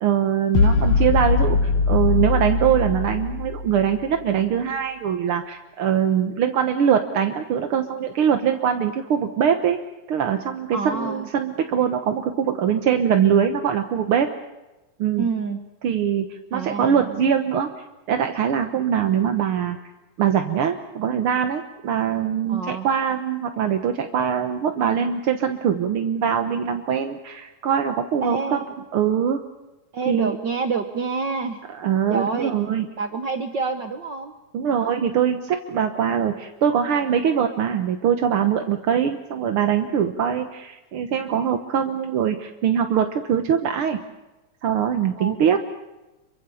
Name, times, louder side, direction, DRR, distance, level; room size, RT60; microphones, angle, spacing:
voice 1, 0.0-9.8 10.1-14.3 15.0-15.3 15.8-17.7 18.1-19.8 20.2-28.6 28.9-29.4 30.1-30.4 31.8-32.9 34.5-44.0 44.6-45.6, right 8 dB, 60° right, 6 dB, 1.5 m, -22 dB
sound 1, 0.5-4.0, left 4 dB, 65° left, 2.5 m, -21 dB
voice 2, 10.7-11.3 15.2-15.6 16.5-17.1 22.5-22.9 28.2-28.7 29.9-31.6 32.1-32.5 33.0-34.3 34.6-34.9 45.2-45.6, right 4 dB, 75° right, 7 dB, 1.0 m, -28 dB
28.0 x 23.5 x 7.1 m, 1.0 s
omnidirectional pair, 3.7 m